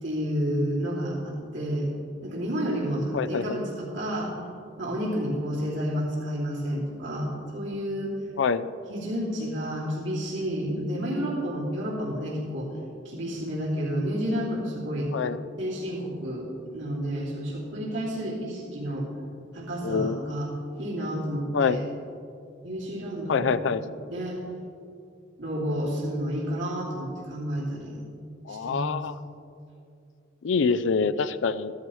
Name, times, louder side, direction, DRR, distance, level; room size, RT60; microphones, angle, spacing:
voice 1, 0.0-1.9 2.2-4.3 4.8-8.2 8.9-12.7 13.0-15.1 15.6-16.5 16.7-19.1 19.5-20.5 20.8-21.8 22.6-24.4 25.4-28.0 28.5-29.0, equal, 85° right, -5 dB, 2.7 m, -30 dB
voice 2, 3.1-3.6 8.4-8.7 15.1-15.4 19.8-20.2 21.5-21.8 23.3-23.8 28.5-29.2 30.4-31.7, left 5 dB, 85° left, 13 dB, 0.4 m, -25 dB
14.0 x 13.0 x 3.2 m, 2.5 s
head